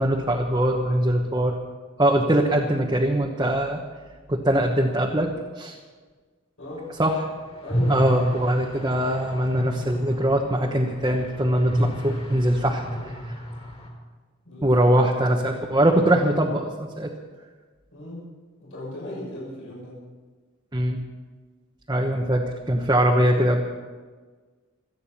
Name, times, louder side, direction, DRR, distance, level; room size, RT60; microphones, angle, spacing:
voice 1, 0.0-1.6 2.0-3.8 4.3-5.8 7.0-7.3 7.9-13.4 14.6-17.1 20.7-21.0 21.9-23.6, right 1 dB, 20° right, 0 dB, 1.2 m, -22 dB
voice 2, 7.6-8.1 14.5-14.9 17.9-18.3 18.6-20.0, left 1 dB, 70° left, -5 dB, 6.9 m, -37 dB
sound 1, 7.6-13.9, equal, 30° left, 3.3 m, -31 dB
27.0 x 9.3 x 5.8 m, 1.4 s
head